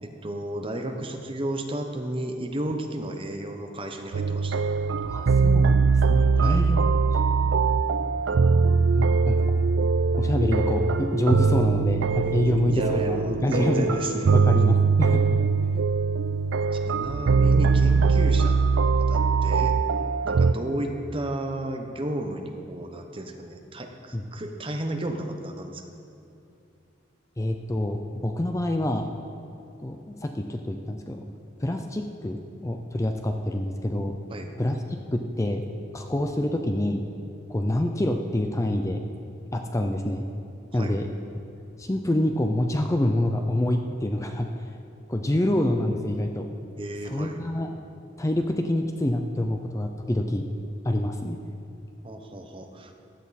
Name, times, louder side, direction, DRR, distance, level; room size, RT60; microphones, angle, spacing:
voice 1, 0.0-4.6 6.4-6.7 12.7-14.3 16.7-19.7 20.2-25.9 34.3-34.5 40.7-40.9 46.8-47.4 52.0-52.9, right 1 dB, 30° right, 4 dB, 1.0 m, -33 dB
sound 1, 4.1-20.5, right 5 dB, 75° right, 0.4 m, -22 dB
voice 2, 5.0-7.2 9.0-9.7 10.2-14.0 14.3-15.4 15.7-15.8 24.1-24.2 27.4-29.1 29.8-31.2 31.6-34.1 34.6-34.8 35.1-35.6 35.9-37.0 37.5-39.0 39.5-40.2 40.7-41.1 41.8-44.7 45.1-46.5 47.0-47.7 48.2-50.5 50.8-51.4, left 1 dB, 15° left, 4 dB, 0.5 m, -26 dB
15.5 x 11.5 x 4.2 m, 2.6 s
head